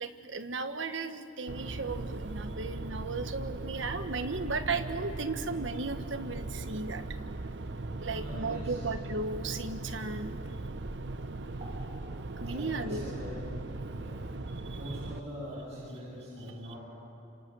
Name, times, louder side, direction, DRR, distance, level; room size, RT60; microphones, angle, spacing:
voice 1, 0.0-7.0 8.0-10.4 12.4-13.1 14.3-14.4 14.7-15.0, right 3 dB, 80° right, 8 dB, 1.4 m, -35 dB
sound 1, 1.5-15.2, right 2 dB, 60° right, 0.7 m, -39 dB
voice 2, 8.0-8.8 11.6-11.7 12.0-12.1 12.4-13.3 14.0-16.8, equal, 35° right, -9 dB, 7.9 m, -43 dB
29.5 x 27.0 x 6.3 m, 2.9 s
head